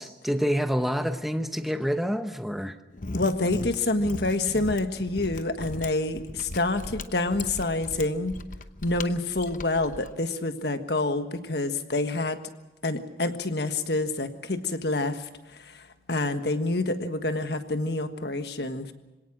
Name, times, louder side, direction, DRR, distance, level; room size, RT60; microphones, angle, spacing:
voice 1, 0.0-2.7, equal, ahead, 0.9 m, -27 dB
Mechanisms, 2.9-10.1, left 2 dB, 45° left, 0.9 m, -38 dB
voice 2, 3.1-8.3 8.8-12.4 12.8-18.9, left 2 dB, 65° left, 1.5 m, -27 dB
26.0 x 17.5 x 6.4 m
head